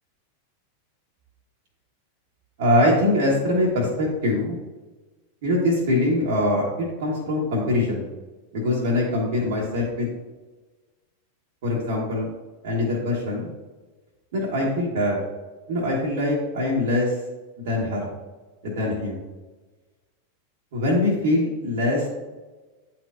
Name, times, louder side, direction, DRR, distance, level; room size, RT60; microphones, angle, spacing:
voice 1, 2.6-4.5 5.4-6.7 7.0-8.0 8.5-10.1 11.6-12.3 12.6-13.5 14.3-15.2 15.7-17.2 17.6-18.1 18.6-19.2 20.7-22.1, left 1 dB, 55° right, -4 dB, 1.4 m, -23 dB
10.0 x 4.4 x 2.5 m, 1.2 s
figure-of-eight pair, 90°, 0 cm